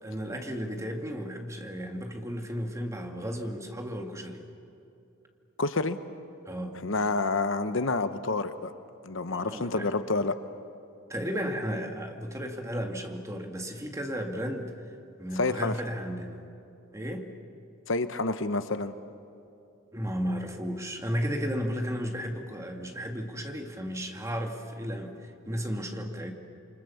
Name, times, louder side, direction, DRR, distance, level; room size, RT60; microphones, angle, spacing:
voice 1, 0.0-4.4 6.5-6.8 9.3-9.9 11.1-14.7 15.2-16.4 16.9-17.3 19.9-26.3, equal, 15° right, 3 dB, 2.1 m, -34 dB
voice 2, 5.6-6.0 6.8-8.7 9.0-10.3 15.4-15.7 17.9-18.9, left 3 dB, 65° left, 11 dB, 1.0 m, -28 dB
28.0 x 25.0 x 7.2 m, 2.8 s
head